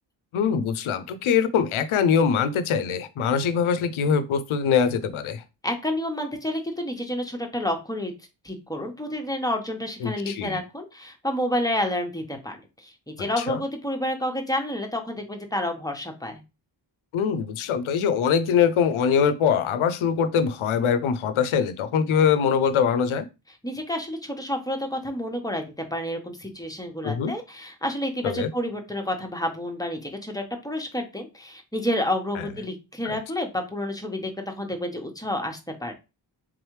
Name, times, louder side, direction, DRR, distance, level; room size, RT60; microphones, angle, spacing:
voice 1, 0.3-5.4 10.0-10.6 13.4-13.6 17.1-23.3 27.0-27.3 28.2-28.5 32.3-32.5 33.0-33.2, left 7 dB, 85° left, 0.6 m, -23 dB
voice 2, 5.6-8.1 8.4-16.4 23.6-35.9, left 1 dB, 10° left, 1.0 m, -29 dB
3.7 x 3.1 x 3.2 m
cardioid pair, 55°, 47 cm